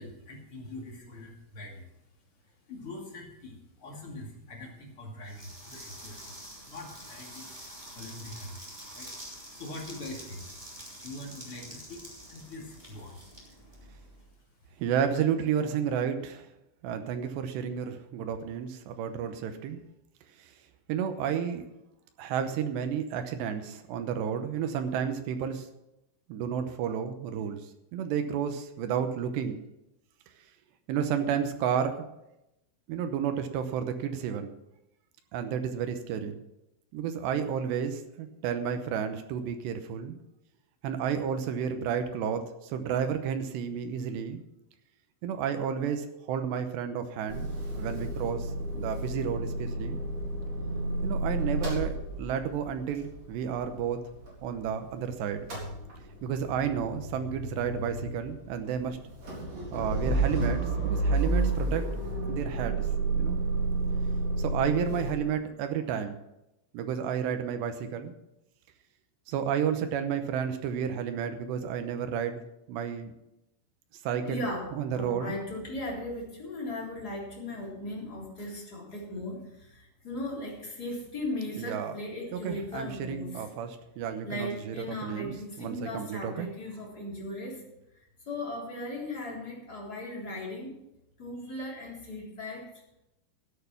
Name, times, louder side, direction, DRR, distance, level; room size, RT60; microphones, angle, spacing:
voice 1, 0.0-10.6 11.0-14.8, left 2 dB, 40° left, -1 dB, 2.1 m, -45 dB
sound 1, 5.3-14.2, equal, 15° right, 1.9 m, -47 dB
voice 2, 14.8-16.5 16.8-19.8 20.4-20.5 20.9-21.6 22.2-25.7 26.3-27.7 27.9-29.6 30.9-32.1 32.9-34.5 35.3-36.4 36.9-40.2 40.8-44.4 45.2-47.5 47.8-50.0 51.0-54.0 54.4-55.5 56.2-59.0 59.7-61.9 62.3-62.9 63.2-63.4 64.4-66.2 66.7-68.1 69.3-72.4 72.7-73.1 74.0-74.4 74.7-75.4 81.6-81.9 82.3-85.3 85.6-86.5, right 8 dB, 75° right, 7 dB, 2.6 m, -31 dB
Motor vehicle (road) / Engine starting / Idling, 47.3-55.0 55.3-65.1, right 2 dB, 30° right, 4.3 m, -31 dB
voice 3, 74.3-83.4 84.2-87.6 87.9-90.8 91.2-92.7, left 1 dB, 20° left, -3 dB, 3.3 m, -37 dB
13.5 x 9.1 x 5.9 m, 0.88 s
omnidirectional pair, 5.9 m